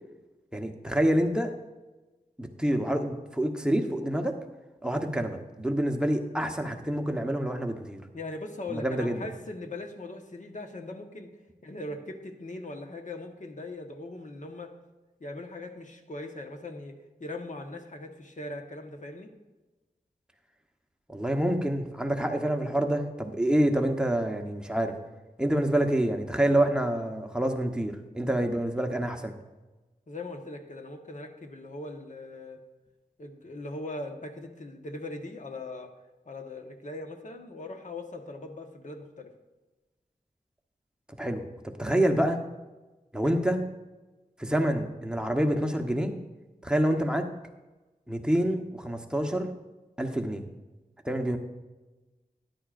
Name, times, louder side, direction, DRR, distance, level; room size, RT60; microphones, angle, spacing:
voice 1, 0.5-1.5 2.4-4.3 4.8-8.0 8.7-9.2 21.1-24.9 25.4-29.3 41.1-41.5 41.8-42.4 43.1-43.6 44.4-46.1 46.6-47.3 48.1-49.5 50.0-50.4 51.0-51.4, right 1 dB, 5° right, 3 dB, 1.1 m, -27 dB
voice 2, 8.1-11.3 11.6-14.7 15.2-16.9 17.2-19.3 30.1-32.6 33.2-35.9 36.3-39.3, left 2 dB, 55° left, 4 dB, 1.3 m, -40 dB
13.5 x 10.5 x 2.6 m, 1.1 s
wide cardioid pair, 60°, 15 cm